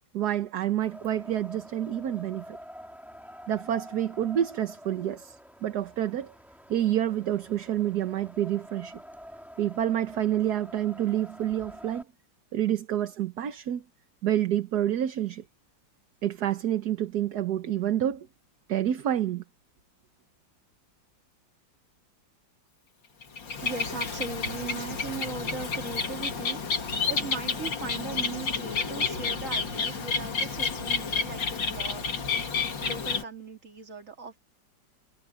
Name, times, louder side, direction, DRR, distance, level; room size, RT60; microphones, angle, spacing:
voice 1, 0.1-2.6 3.5-6.3 6.7-9.0 9.6-12.0 12.5-13.8 14.2-15.4 16.2-18.3 18.7-19.4, right 11 dB, 60° right, 1.4 m, -28 dB
Wind, 0.8-12.0, equal, ahead, 3.8 m, -47 dB
Bird, 23.2-33.2, left 5 dB, 75° left, 3.0 m, -30 dB
voice 2, 23.6-32.4 32.8-34.4, right 5 dB, 40° right, 2.8 m, -39 dB
omnidirectional pair, 2.1 m